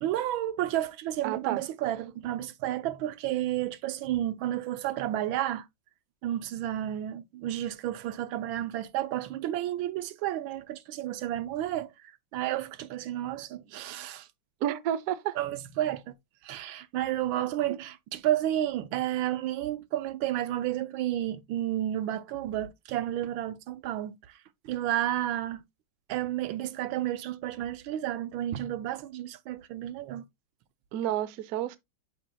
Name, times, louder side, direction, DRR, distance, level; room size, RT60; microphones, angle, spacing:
voice 1, 0.0-5.6 6.2-11.9 12.3-14.3 15.4-16.1 16.4-24.2 24.6-25.6 26.1-30.2, right 13 dB, 80° right, 1.4 m, -31 dB
voice 2, 1.2-1.6 14.6-15.4 30.9-31.8, right 11 dB, 65° right, 0.9 m, -30 dB
8.9 x 5.8 x 2.2 m
omnidirectional pair, 2.2 m